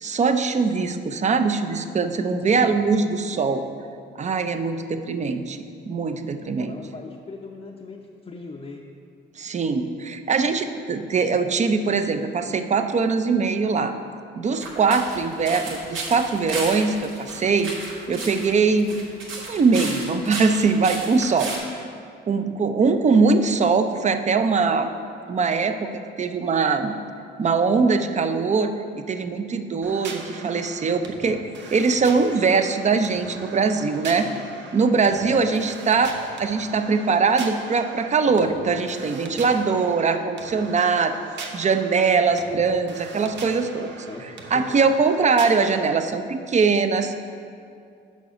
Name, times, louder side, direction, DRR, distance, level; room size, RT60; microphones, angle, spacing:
voice 1, 0.0-3.7 4.2-5.6 5.9-6.7 9.4-13.9 14.4-17.7 18.1-19.0 19.5-21.5 22.3-24.9 25.3-25.9 26.2-26.9 27.4-34.3 34.7-41.2 41.5-43.9 44.5-47.1, right 4 dB, 35° right, 8 dB, 0.5 m, -22 dB
voice 2, 2.4-2.9 6.4-8.8 34.2-34.5 35.2-35.7 44.1-44.8, left 3 dB, 30° left, -2 dB, 0.6 m, -39 dB
sound 1, 14.6-21.6, right 2 dB, 90° right, 1.6 m, -33 dB
sound 2, 29.8-45.9, right 4 dB, 65° right, 0.9 m, -40 dB
6.3 x 4.9 x 6.7 m, 2.4 s
cardioid pair, 90°, 20 cm